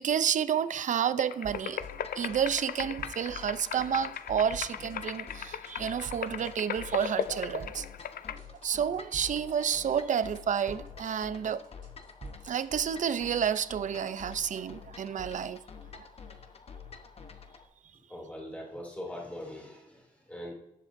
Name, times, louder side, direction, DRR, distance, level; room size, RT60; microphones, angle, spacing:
voice 1, 0.0-1.9 2.2-7.9 8.6-11.7 12.4-15.6 15.9-16.1, right 8 dB, 60° right, 0.5 m, -30 dB
sound 1, 1.2-8.4, left 9 dB, 85° left, 0.4 m, -38 dB
sound 2, 1.4-1.9 2.2-3.5 3.7-4.2 4.5-5.0 5.3-6.5 6.8-7.3 7.6-8.1 8.4-9.6 9.9-10.4 10.7-13.7, right 5 dB, 80° right, 3.3 m, -50 dB
sound 3, 1.8-17.7, left 6 dB, 45° left, 0.9 m, -48 dB
voice 2, 18.1-20.5, left 1 dB, 10° left, 2.6 m, -41 dB
18.0 x 7.5 x 2.6 m
wide cardioid pair, 175°, 15 cm